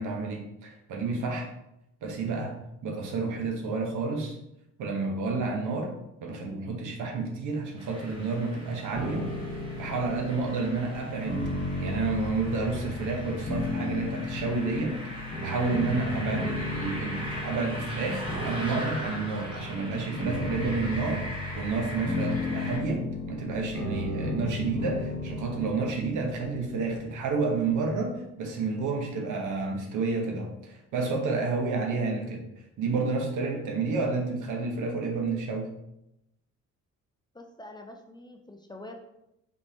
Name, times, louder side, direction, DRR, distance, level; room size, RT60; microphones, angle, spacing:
voice 1, 0.0-1.5 2.0-2.5 2.8-4.4 4.8-5.9 6.2-11.5 11.8-21.2 21.5-32.4 32.8-35.7, right 4 dB, 80° right, 1 dB, 1.0 m, -30 dB
sound 1, 7.8-22.8, equal, 15° right, 1.1 m, -41 dB
sound 2, 8.9-27.9, left 2 dB, 45° left, 1.4 m, -35 dB
voice 2, 37.3-39.0, left 1 dB, 15° left, 3 dB, 0.4 m, -45 dB
4.3 x 3.2 x 2.8 m, 0.84 s
cardioid pair, 90°, 30 cm